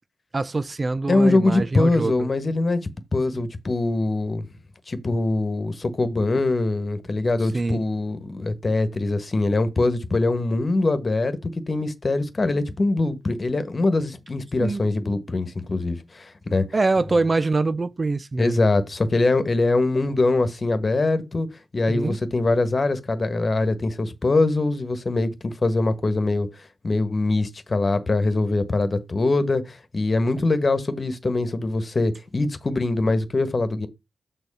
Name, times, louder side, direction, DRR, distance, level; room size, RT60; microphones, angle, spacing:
voice 1, 0.3-2.3 3.3-3.5 7.5-7.8 14.6-14.8 16.7-18.7 21.9-22.2, right 3 dB, 40° right, 0.5 m, -24 dB
voice 2, 1.1-2.8 3.1-4.5 4.9-16.6 18.4-21.5 21.7-26.5 26.8-33.9, left 2 dB, 40° left, 1.4 m, -23 dB
6.5 x 4.0 x 5.4 m
supercardioid pair, 45°, 0 cm